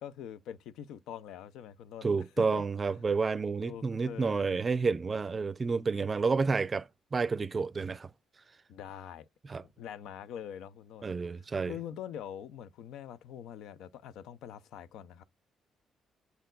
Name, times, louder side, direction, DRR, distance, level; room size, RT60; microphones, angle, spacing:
voice 1, 0.0-2.1 2.5-2.6 3.0-3.1 3.6-4.6 8.7-9.2 9.8-11.1 11.7-15.2, left 9 dB, 85° left, 0.6 m, -44 dB
voice 2, 2.0-8.1 9.5-9.6 11.0-11.7, right 4 dB, 35° right, 0.5 m, -30 dB
8.1 x 4.4 x 3.9 m
cardioid pair, 90°, 0 cm